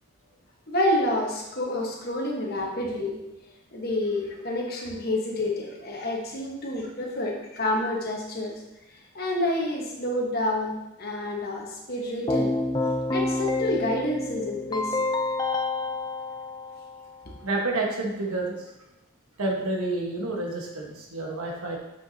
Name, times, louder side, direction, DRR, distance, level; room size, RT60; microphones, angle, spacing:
voice 1, 0.7-3.3 3.7-8.6 9.1-12.6 13.1-15.0, left 1 dB, 45° left, -1 dB, 1.2 m, -28 dB
Keyboard (musical), 12.3-17.2, left 2 dB, 20° left, 0.4 m, -28 dB
voice 2, 17.4-18.7 19.4-21.8, right 2 dB, 85° right, 0 dB, 1.3 m, -29 dB
7.0 x 6.1 x 2.8 m, 0.93 s
head